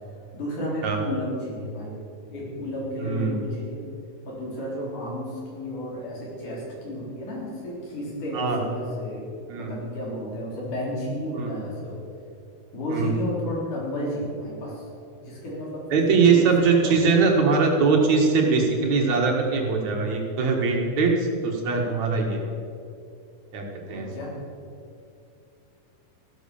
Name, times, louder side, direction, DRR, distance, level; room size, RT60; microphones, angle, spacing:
voice 1, 0.3-2.0 2.3-3.8 4.3-9.3 9.6-12.0 12.7-14.8 15.2-17.1 23.9-24.3, equal, 70° left, -4 dB, 5.4 m, -32 dB
voice 2, 3.0-3.4 8.3-8.6 9.5-9.7 11.3-11.5 12.9-13.1 15.9-22.4 23.5-24.1, right 4 dB, 65° right, 1 dB, 2.9 m, -21 dB
14.5 x 12.5 x 7.0 m, 2.6 s
omnidirectional pair, 3.7 m